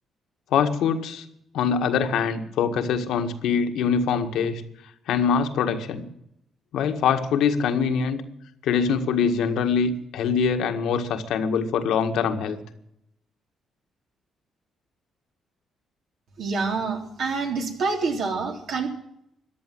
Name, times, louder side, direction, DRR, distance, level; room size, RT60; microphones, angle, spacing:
voice 1, 0.5-1.3 1.5-4.6 5.1-6.1 6.7-8.2 8.6-12.6, left 6 dB, 80° left, 6 dB, 1.7 m, -23 dB
voice 2, 16.4-18.9, right 4 dB, 70° right, 2 dB, 3.5 m, -27 dB
15.0 x 10.5 x 9.3 m, 0.75 s
cardioid pair, 90°, 0 cm